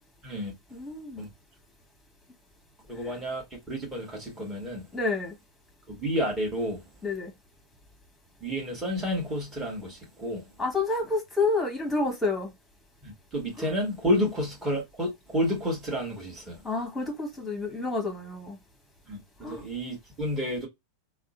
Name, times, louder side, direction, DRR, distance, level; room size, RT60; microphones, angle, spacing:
voice 1, 0.7-1.2 3.0-3.1 4.9-5.4 7.0-7.3 10.6-12.5 13.6-13.7 16.6-18.6 19.4-19.6, left 3 dB, 10° left, 1.4 m, -29 dB
voice 2, 2.9-3.4 3.7-4.8 5.9-6.8 8.4-10.5 13.0-16.6 19.1-20.7, equal, 15° right, 1.8 m, -30 dB
3.5 x 2.2 x 2.5 m
figure-of-eight pair, 90°, 0 cm